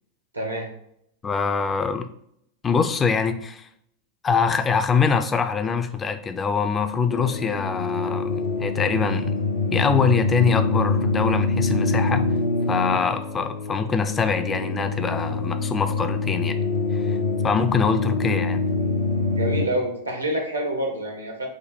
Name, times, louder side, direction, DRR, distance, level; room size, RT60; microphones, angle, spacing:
voice 1, 0.3-0.7 19.3-21.5, right 1 dB, 85° right, 2 dB, 1.0 m, -27 dB
voice 2, 1.2-2.1 2.6-3.7 4.2-9.4 9.7-12.3 12.7-17.2 17.4-18.6, left 5 dB, 20° left, 9 dB, 0.4 m, -24 dB
sound 1, 7.1-19.7, left 3 dB, 65° left, 0.6 m, -25 dB
5.1 x 2.1 x 4.3 m, 0.71 s
figure-of-eight pair, 90°, 0 cm